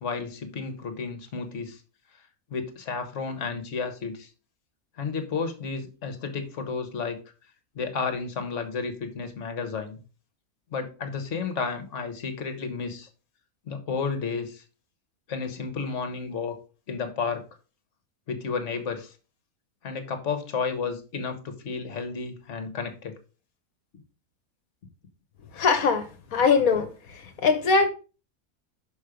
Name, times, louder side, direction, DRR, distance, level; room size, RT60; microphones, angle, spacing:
voice 1, 0.0-1.8 2.5-4.3 5.0-7.2 7.7-10.0 10.7-13.1 13.7-14.6 15.3-16.6 16.9-17.4 18.3-19.1 19.8-23.2, left 5 dB, 55° left, 1.5 m, -32 dB
voice 2, 25.5-27.9, left 5 dB, 70° left, 1.3 m, -22 dB
6.3 x 5.2 x 5.0 m
omnidirectional pair, 1.5 m